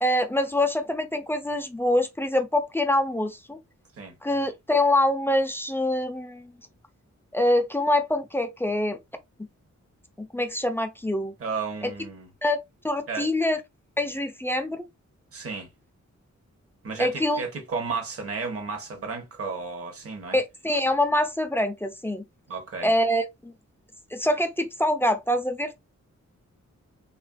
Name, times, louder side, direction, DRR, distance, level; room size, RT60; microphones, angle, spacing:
voice 1, 0.0-3.6 4.2-6.5 7.3-9.0 10.2-11.3 11.8-11.9 12.4-12.6 12.8-13.6 14.0-14.9 17.0-17.4 20.3-22.2 22.8-23.5 24.1-25.8, left 1 dB, 10° left, 0.4 m, -25 dB
voice 2, 11.4-12.3 13.1-13.3 15.3-15.7 16.8-20.4 22.5-22.9, right 4 dB, 50° right, 0.9 m, -33 dB
3.2 x 2.4 x 2.2 m
wide cardioid pair, 130°, 29 cm